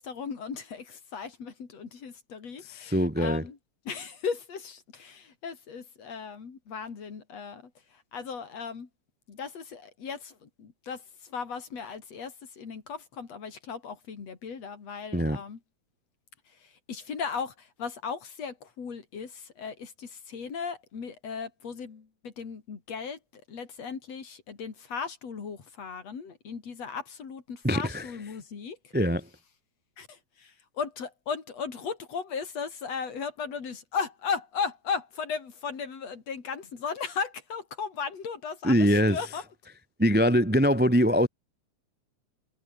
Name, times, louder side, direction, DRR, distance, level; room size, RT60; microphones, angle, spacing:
voice 1, 0.0-3.6 3.9-8.9 9.3-15.6 16.5-28.9 30.0-39.4, left 6 dB, 60° left, 4.4 m, -37 dB
voice 2, 2.9-3.4 15.1-15.4 27.6-28.0 28.9-29.2 38.6-39.2 40.0-41.3, equal, 10° right, 0.5 m, -22 dB
omnidirectional pair, 3.3 m